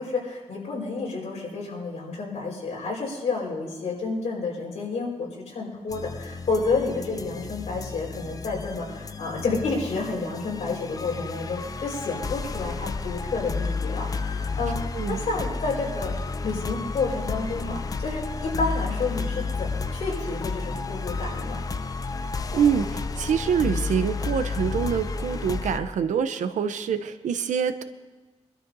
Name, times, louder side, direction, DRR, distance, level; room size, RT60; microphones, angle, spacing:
voice 1, 0.0-14.8 15.1-16.1 16.4-21.6, left 3 dB, 60° left, -3 dB, 4.7 m, -30 dB
sound 1, 5.9-25.8, left 4 dB, 30° left, 0.4 m, -31 dB
voice 2, 14.9-15.2 22.5-27.8, right 7 dB, 90° right, 10 dB, 0.7 m, -25 dB
24.0 x 12.5 x 2.7 m, 1.2 s
wide cardioid pair, 175°, 12 cm